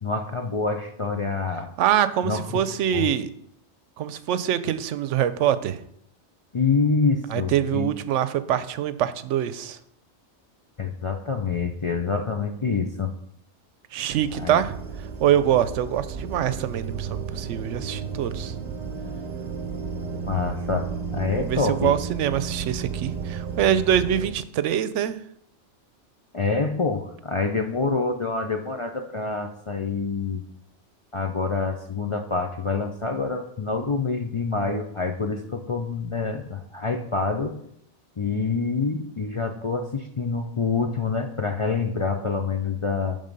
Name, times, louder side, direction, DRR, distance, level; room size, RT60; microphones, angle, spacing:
voice 1, 0.0-1.7 2.2-2.6 2.9-3.1 6.5-7.9 10.8-13.1 14.3-14.6 20.3-22.0 26.3-30.4 31.1-37.6 38.2-43.2, left 4 dB, 40° left, 4 dB, 0.4 m, -26 dB
voice 2, 1.8-3.3 4.0-5.8 7.3-9.8 13.9-14.8 15.2-18.5 21.3-25.2, right 10 dB, 90° right, 13 dB, 0.9 m, -24 dB
sound 1, 14.1-24.3, right 6 dB, 40° right, 0.8 m, -33 dB
11.0 x 3.7 x 5.2 m, 0.70 s
omnidirectional pair, 1.2 m